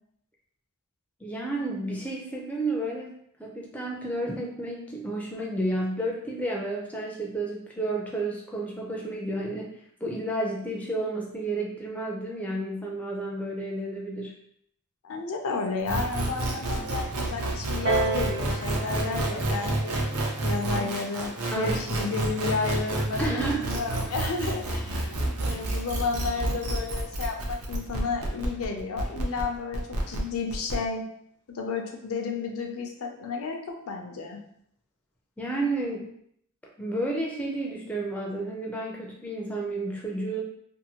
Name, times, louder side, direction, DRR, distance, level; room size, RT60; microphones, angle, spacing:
voice 1, 1.2-3.1 3.4-9.7 10.0-14.3 20.7-20.9 21.5-21.8 23.2-23.8 35.4-36.0 36.8-40.4, right 1 dB, 5° left, -2 dB, 0.4 m, -31 dB
voice 2, 15.0-20.1 20.4-31.0 31.5-34.4, left 4 dB, 70° left, 3 dB, 0.5 m, -32 dB
sound 1, 15.8-30.7, right 2 dB, 75° right, 0.6 m, -29 dB
Piano, 17.8-23.0 23.9-24.0, right 3 dB, 50° right, 0.9 m, -34 dB
2.7 x 2.5 x 2.8 m, 0.69 s
head